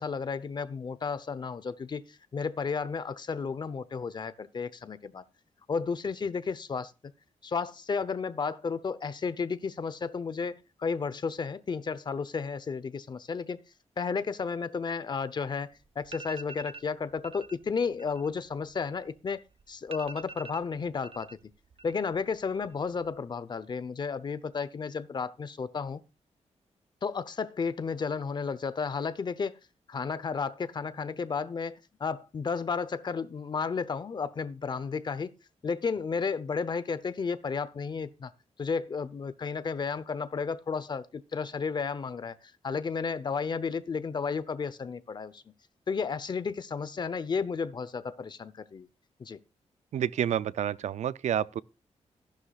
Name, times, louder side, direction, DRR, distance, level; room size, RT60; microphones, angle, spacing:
voice 1, 0.0-5.2 5.7-6.9 7.4-13.6 14.0-19.4 19.7-21.3 21.8-26.0 27.0-29.6 29.9-35.3 35.6-38.3 38.6-42.3 42.6-45.4 45.9-48.9 49.2-49.4, left 5 dB, 40° left, 0.8 m, -33 dB
sound 1, 15.6-15.7 16.0-16.9 17.2-17.6 17.9-19.3 19.6-19.7 19.9-21.3 21.6-22.2 22.5-23.1, right 3 dB, 50° right, 0.9 m, -46 dB
voice 2, 49.9-51.6, right 10 dB, 80° right, 0.5 m, -29 dB
14.5 x 11.5 x 2.4 m
wide cardioid pair, 155°, 12 cm